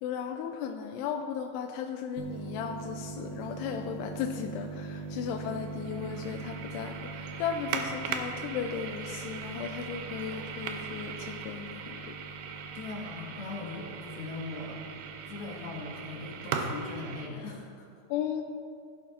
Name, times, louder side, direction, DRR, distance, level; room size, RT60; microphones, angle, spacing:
voice 1, 0.0-12.2 18.1-18.4, left 7 dB, 85° left, 4 dB, 2.4 m, -36 dB
sound 1, 2.2-17.3, right 5 dB, 80° right, 2.3 m, -39 dB
voice 2, 12.7-14.8 15.2-18.0, left 3 dB, 65° left, -3 dB, 3.3 m, -40 dB
15.5 x 11.0 x 2.5 m, 2.4 s
omnidirectional pair, 5.1 m